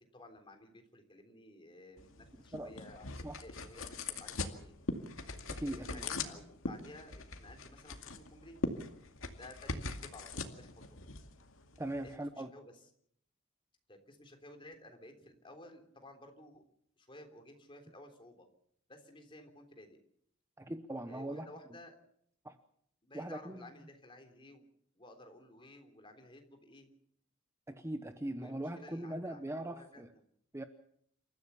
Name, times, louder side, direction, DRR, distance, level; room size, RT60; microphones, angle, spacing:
voice 1, 0.1-4.7 5.8-8.7 9.4-11.0 12.0-12.7 13.9-16.6 17.0-18.5 18.9-20.0 21.1-22.0 23.0-24.6 25.0-26.9 28.4-30.0, left 1 dB, 25° left, 5 dB, 3.5 m, -54 dB
sound 1, 2.0-12.2, left 3 dB, 75° left, 2.2 m, -42 dB
voice 2, 5.5-6.1 11.8-12.5 20.6-21.5 22.4-22.6 23.1-23.6 27.7-30.1 30.5-30.6, right 1 dB, 15° right, 9 dB, 0.8 m, -40 dB
28.0 x 14.5 x 7.0 m, 0.68 s
head